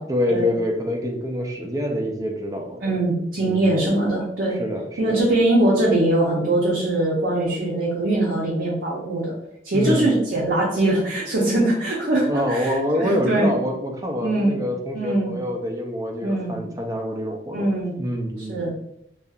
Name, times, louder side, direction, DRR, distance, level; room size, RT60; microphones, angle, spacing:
voice 1, 0.1-2.9 3.4-3.7 4.6-5.2 9.7-10.1 12.3-18.6, left 1 dB, 20° right, 2 dB, 0.4 m, -26 dB
voice 2, 2.8-4.6 5.0-9.4 9.6-13.5 14.2-14.6 14.9-15.4 16.2-16.6 17.5-18.0 18.5-18.7, right 1 dB, 65° right, -5 dB, 0.6 m, -22 dB
2.7 x 2.3 x 2.3 m, 0.74 s
head